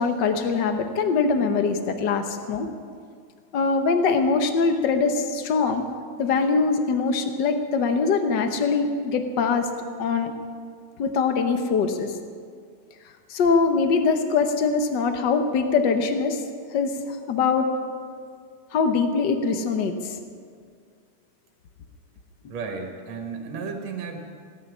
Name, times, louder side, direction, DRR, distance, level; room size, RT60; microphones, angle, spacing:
voice 1, 0.0-2.7 3.5-5.8 6.2-9.7 10.0-10.3 11.0-12.2 13.3-16.4 16.7-16.9 17.3-17.7 18.7-20.2, left 4 dB, 70° left, 6 dB, 1.0 m, -22 dB
voice 2, 22.5-24.2, right 5 dB, 60° right, 3 dB, 2.7 m, -33 dB
17.0 x 8.8 x 9.6 m, 2.1 s
omnidirectional pair, 3.5 m